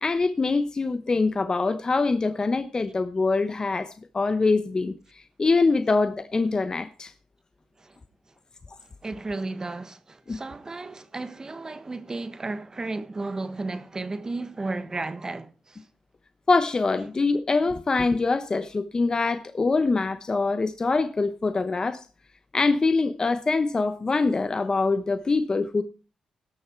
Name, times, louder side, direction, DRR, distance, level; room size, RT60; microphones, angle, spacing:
voice 1, 0.0-4.9 5.4-7.1 10.3-10.4 16.5-22.0 22.5-25.8, left 3 dB, 35° left, 0.9 m, -24 dB
voice 2, 9.0-15.8, right 3 dB, 30° right, 1.3 m, -34 dB
17.5 x 6.6 x 4.6 m
cardioid pair, 70°, 2 cm